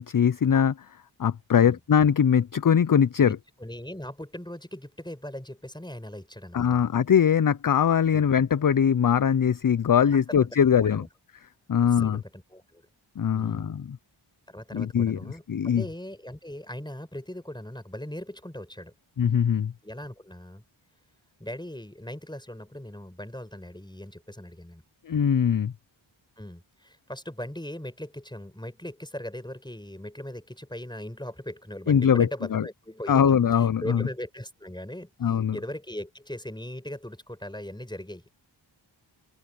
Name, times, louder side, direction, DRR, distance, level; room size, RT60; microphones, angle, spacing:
voice 1, 0.0-3.4 6.5-11.1 11.7-12.2 13.2-14.0 14.7-15.2 15.5-15.8 19.2-19.7 25.1-25.7 31.9-32.7 33.1-34.1 35.2-35.6, left 8 dB, 45° left, 0.5 m, -22 dB
voice 2, 3.2-6.7 8.1-8.3 10.3-10.5 10.8-11.1 12.0-12.8 13.3-13.7 14.5-18.9 19.8-20.6 21.4-24.8 26.4-35.1 35.5-38.2, left 1 dB, 10° left, 4.7 m, -39 dB
open air
wide cardioid pair, 55°, 48 cm